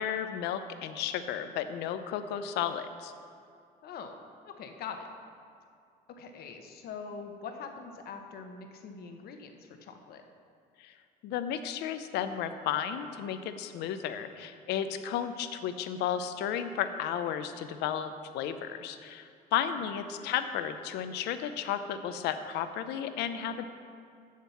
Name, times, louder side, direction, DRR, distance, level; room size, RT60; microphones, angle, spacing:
voice 1, 0.0-3.1 10.8-10.9 11.2-23.7, left 9 dB, 85° left, 10 dB, 0.7 m, -33 dB
voice 2, 4.4-5.1 6.1-10.2 14.8-14.9, left 5 dB, 65° left, 5 dB, 1.1 m, -43 dB
7.5 x 7.4 x 7.0 m, 2.3 s
cardioid pair, 110°, 17 cm